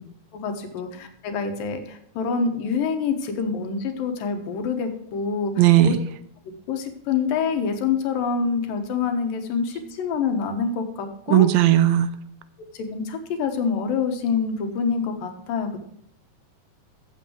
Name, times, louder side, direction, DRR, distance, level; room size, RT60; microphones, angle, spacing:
voice 1, 0.3-6.0 6.7-11.5 12.8-15.7, left 5 dB, 80° left, 6 dB, 3.0 m, -26 dB
voice 2, 5.6-5.9 11.3-12.1, right 13 dB, 90° right, 13 dB, 2.5 m, -16 dB
14.5 x 7.5 x 3.2 m, 0.71 s
omnidirectional pair, 4.1 m